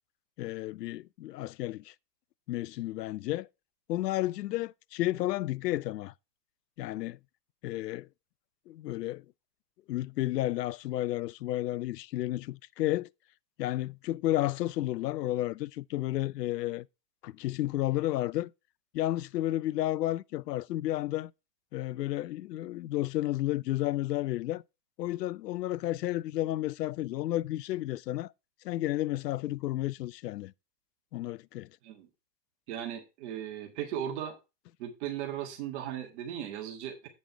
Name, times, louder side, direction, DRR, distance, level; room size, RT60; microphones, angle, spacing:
voice 1, 0.4-1.9 2.5-3.5 3.9-6.1 6.8-7.2 7.6-8.1 8.7-9.2 9.9-13.1 13.6-16.9 17.2-18.5 18.9-21.3 21.7-24.6 25.0-28.3 28.6-30.5 31.1-31.7, left 15 dB, 75° left, 0.6 m, -32 dB
voice 2, 32.7-34.4 34.8-37.1, right 10 dB, 45° right, 1.8 m, -37 dB
8.4 x 5.3 x 4.6 m
hypercardioid pair, 140°, 49 cm